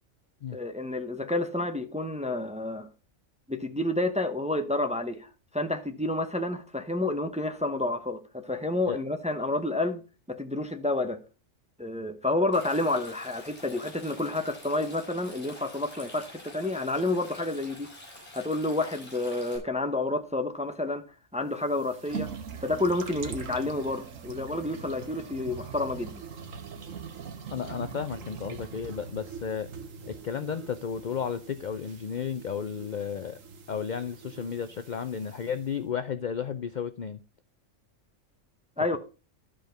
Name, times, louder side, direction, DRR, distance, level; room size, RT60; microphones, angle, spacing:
voice 1, 0.5-2.9 3.5-10.0 10.3-11.2 11.8-17.9 18.3-21.0 21.3-22.3 22.6-26.1 38.8-39.0, left 2 dB, 5° right, 0.7 m, -29 dB
Stream, 12.5-19.6, left 1 dB, 30° left, 5.2 m, -48 dB
sound 1, 21.5-35.8, right 6 dB, 90° right, 1.5 m, -43 dB
voice 2, 27.5-29.7 30.1-33.4 33.7-37.2, left 7 dB, 55° left, 0.5 m, -33 dB
12.5 x 5.1 x 5.1 m
omnidirectional pair, 1.3 m